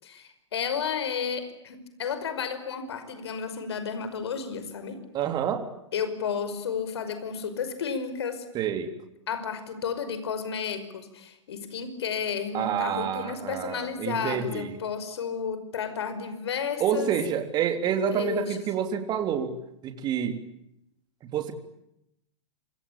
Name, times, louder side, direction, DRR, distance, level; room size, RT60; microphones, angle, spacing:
voice 1, 0.0-5.0 5.9-8.5 9.3-17.1 18.1-18.6, left 6 dB, 60° left, 10 dB, 5.6 m, -32 dB
voice 2, 5.1-5.7 8.5-8.9 12.5-14.8 16.8-19.5 19.8-20.4 21.2-21.5, right 8 dB, 30° right, 7 dB, 3.5 m, -28 dB
27.0 x 25.0 x 8.8 m, 0.82 s
figure-of-eight pair, 105°, 15 cm